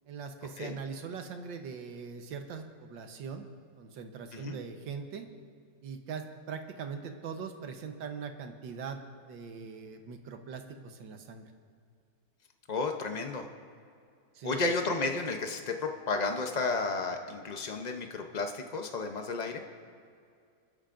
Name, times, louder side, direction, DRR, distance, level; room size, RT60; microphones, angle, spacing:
voice 1, 0.1-3.5 3.8-5.3 5.8-11.5 14.4-14.6, right 6 dB, 80° right, 6 dB, 1.7 m, -41 dB
voice 2, 12.7-13.5 14.4-19.6, left 3 dB, 75° left, 4 dB, 0.4 m, -32 dB
29.5 x 10.0 x 2.6 m, 2.3 s
omnidirectional pair, 2.0 m